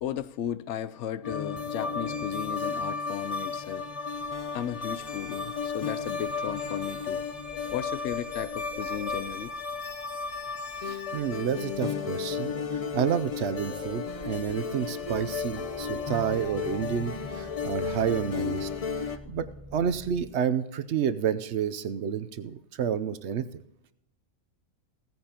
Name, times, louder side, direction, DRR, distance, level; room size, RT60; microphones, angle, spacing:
voice 1, 0.0-3.9 4.5-7.2 7.7-9.5, left 10 dB, 65° left, 0.8 m, -35 dB
sound 1, 1.2-19.2, left 5 dB, 40° left, 0.5 m, -33 dB
Bird, 4.1-18.1, left 1 dB, 5° left, 2.2 m, -51 dB
voice 2, 10.8-18.7 19.0-23.5, right 8 dB, 60° right, 0.9 m, -30 dB
sound 2, 15.0-20.3, equal, 35° right, 0.5 m, -47 dB
16.0 x 15.0 x 2.9 m
omnidirectional pair, 1.4 m